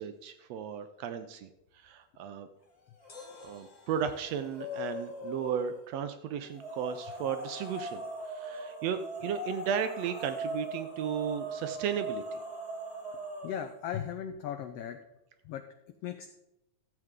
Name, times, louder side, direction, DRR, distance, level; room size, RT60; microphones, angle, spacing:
voice 1, 0.0-1.5 1.7-2.5 3.4-12.4, right 8 dB, 75° right, 9 dB, 1.5 m, -35 dB
sound 1, 3.0-3.6 3.9-5.8 6.5-13.7, right 1 dB, 20° left, 2.5 m, -40 dB
sound 2, 3.1-6.2 6.4-6.5, left 4 dB, 40° left, 1.8 m, -60 dB
voice 2, 13.4-15.0 15.4-15.6 16.0-16.3, left 9 dB, 85° left, 7 dB, 1.3 m, -37 dB
14.5 x 7.8 x 3.6 m, 0.89 s
omnidirectional pair, 3.5 m